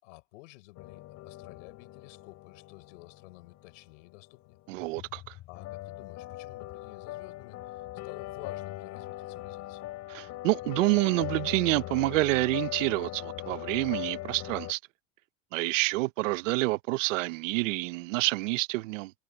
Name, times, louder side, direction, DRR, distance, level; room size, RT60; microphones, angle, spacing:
voice 1, 0.0-4.6 5.5-9.8, left 24 dB, 75° left, 5.7 m, -52 dB
sound 1, 0.8-14.7, left 16 dB, 45° left, 3.1 m, -41 dB
voice 2, 4.7-5.3 10.1-14.8 15.5-19.1, right 21 dB, 75° right, 1.0 m, -28 dB
supercardioid pair, 120°, 38 cm